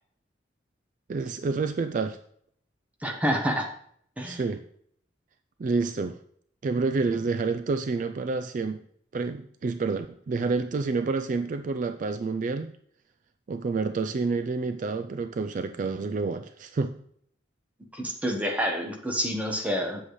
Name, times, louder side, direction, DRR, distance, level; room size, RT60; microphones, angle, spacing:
voice 1, 1.1-2.2 4.2-4.6 5.6-6.2 6.6-8.8 9.1-12.7 13.5-17.0, right 4 dB, 45° right, 9 dB, 0.3 m, -28 dB
voice 2, 3.0-3.7 4.2-4.4 17.9-20.0, equal, 10° right, 2 dB, 1.1 m, -28 dB
8.4 x 7.5 x 3.2 m, 0.65 s
head